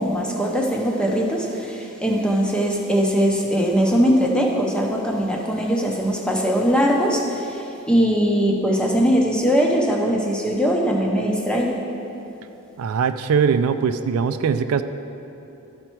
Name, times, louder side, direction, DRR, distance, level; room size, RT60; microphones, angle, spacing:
voice 1, 0.0-11.8, equal, 5° left, -1 dB, 0.7 m, -21 dB
voice 2, 12.8-14.8, right 6 dB, 80° right, 10 dB, 0.3 m, -21 dB
12.5 x 4.5 x 4.5 m, 2.9 s
head